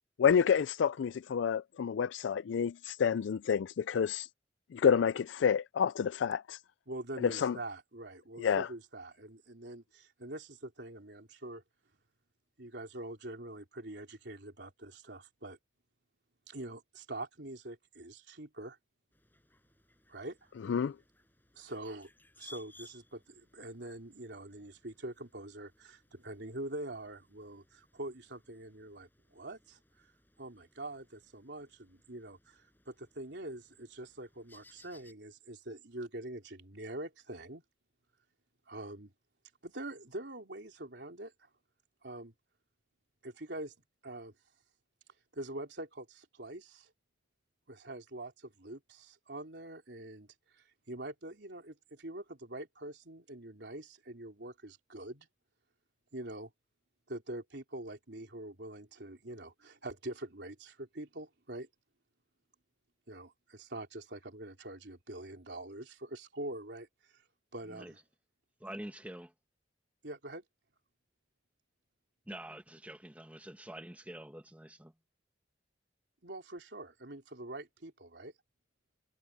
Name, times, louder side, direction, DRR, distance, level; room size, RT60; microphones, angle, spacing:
voice 1, 0.2-4.3 4.7-6.6 7.2-7.6 8.4-8.7 20.7-20.9, left 7 dB, 80° left, 0.4 m, -29 dB
voice 2, 6.9-11.6 12.6-15.6 16.5-18.8 20.1-20.5 21.5-22.1 22.4-30.1 30.4-37.6 38.7-39.1 39.6-41.5 42.0-42.3 43.2-43.7 44.0-44.3 45.3-46.9 47.7-55.3 56.1-56.5 57.1-61.7 63.1-66.9 67.5-68.0 70.0-70.4 76.2-78.3, right 1 dB, 65° right, 3.8 m, -44 dB
sound 1, 19.1-35.1, left 2 dB, 10° left, 6.2 m, -62 dB
voice 3, 68.6-69.3 72.3-74.9, right 1 dB, 10° right, 1.9 m, -46 dB
head